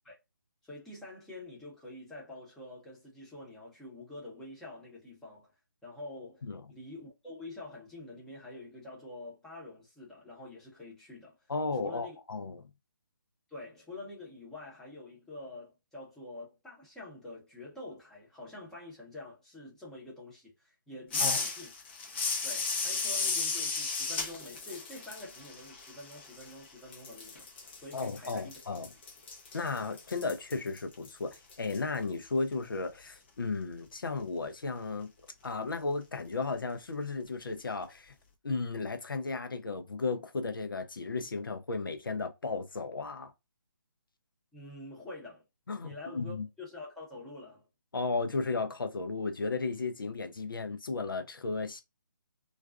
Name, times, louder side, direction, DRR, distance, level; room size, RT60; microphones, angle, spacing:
voice 1, 0.6-5.5 5.8-11.4 11.8-12.2 13.5-21.7 22.4-27.5 27.8-28.6 44.5-45.4 45.8-47.7, left 2 dB, 5° left, 0.8 m, -47 dB
voice 2, 11.5-12.7 21.2-21.4 27.9-28.9 29.5-35.1 35.4-38.1 38.4-43.3 45.7-46.4 47.9-51.8, left 3 dB, 80° left, 0.6 m, -34 dB
sound 1, 21.1-26.6 26.9-31.8, left 4 dB, 30° left, 0.6 m, -35 dB
2.5 x 2.3 x 2.3 m
figure-of-eight pair, 155°, 11 cm